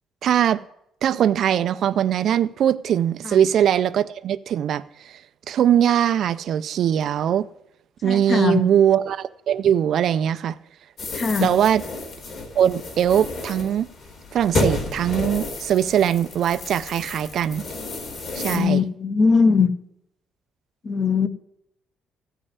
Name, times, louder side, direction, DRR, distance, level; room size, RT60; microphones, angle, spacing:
voice 1, 0.2-0.6 1.0-5.2 5.5-7.5 8.0-10.6 11.4-11.8 12.5-13.9 14.3-17.6 18.3-18.8, right 9 dB, 50° right, 0.4 m, -21 dB
voice 2, 8.0-8.6 11.1-11.5 18.5-19.7 20.8-21.3, left 5 dB, 25° left, 0.7 m, -20 dB
sound 1, 11.0-18.6, left 2 dB, 45° left, 2.6 m, -31 dB
14.5 x 5.5 x 9.6 m
cardioid pair, 175°, 0 cm